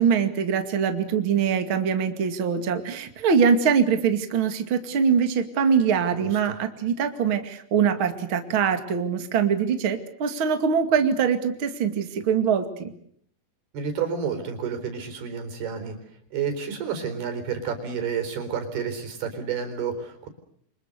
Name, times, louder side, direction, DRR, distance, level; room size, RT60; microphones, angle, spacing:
voice 1, 0.0-12.9, right 6 dB, 40° right, 7 dB, 2.6 m, -23 dB
voice 2, 6.1-6.5 13.7-16.0 16.3-20.3, right 6 dB, 90° right, 8 dB, 6.3 m, -30 dB
28.5 x 25.5 x 6.7 m, 0.64 s
omnidirectional pair, 4.4 m